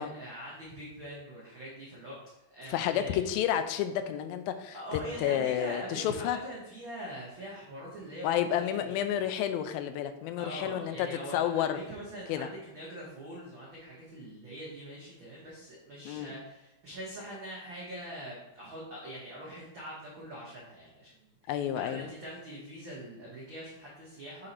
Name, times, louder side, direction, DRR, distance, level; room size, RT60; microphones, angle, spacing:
voice 1, 0.0-2.2 2.5-3.2 4.7-9.2 10.4-24.5, right 1 dB, 80° right, -5 dB, 1.1 m, -43 dB
voice 2, 2.7-6.4 8.2-11.1 11.3-11.8 12.3-12.5 16.1-16.3 21.5-22.1, left 10 dB, 85° left, 9 dB, 2.4 m, -30 dB
6.4 x 4.1 x 4.3 m, 0.96 s
omnidirectional pair, 4.3 m